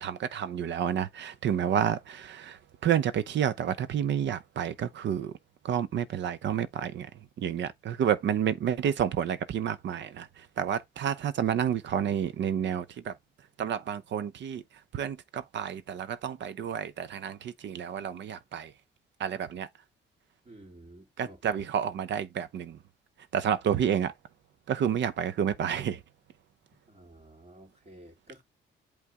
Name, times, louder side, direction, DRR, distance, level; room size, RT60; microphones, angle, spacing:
voice 1, 0.0-5.3 5.6-13.2 13.6-14.6 14.9-18.7 19.2-19.7 21.2-22.8 23.3-24.1 24.7-26.0, right 9 dB, 65° right, 0.8 m, -30 dB
voice 2, 20.4-21.6 26.9-28.4, right 1 dB, 35° right, 3.1 m, -52 dB
8.4 x 3.5 x 3.6 m
cardioid pair, 90°, 20 cm